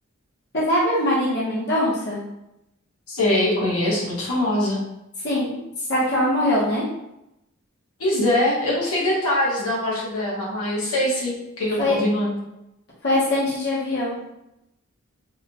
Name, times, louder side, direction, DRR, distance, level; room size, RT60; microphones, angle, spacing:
voice 1, 0.5-2.2 5.2-5.6 5.9-6.8 11.8-12.0 13.0-14.2, left 1 dB, 50° left, -7 dB, 0.9 m, -22 dB
voice 2, 3.1-4.8 8.0-12.4, left 1 dB, 90° left, -5 dB, 1.1 m, -23 dB
3.5 x 2.3 x 2.9 m, 0.88 s
head